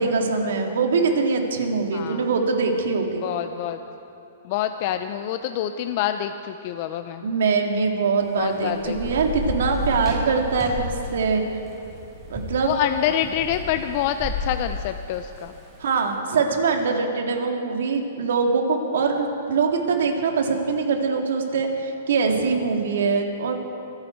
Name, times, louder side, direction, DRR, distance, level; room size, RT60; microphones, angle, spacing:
voice 1, 0.0-3.2 7.2-11.4 12.3-12.7 15.8-23.6, right 4 dB, 75° right, 3 dB, 2.2 m, -23 dB
voice 2, 1.9-2.3 3.2-3.8 4.4-7.3 8.3-9.2 12.6-15.5, left 11 dB, 40° left, 9 dB, 0.5 m, -26 dB
Thunder / Rain, 8.2-15.9, left 1 dB, 10° right, 4.3 m, -32 dB
25.0 x 9.8 x 4.5 m, 2.9 s
hypercardioid pair, 150°, 0 cm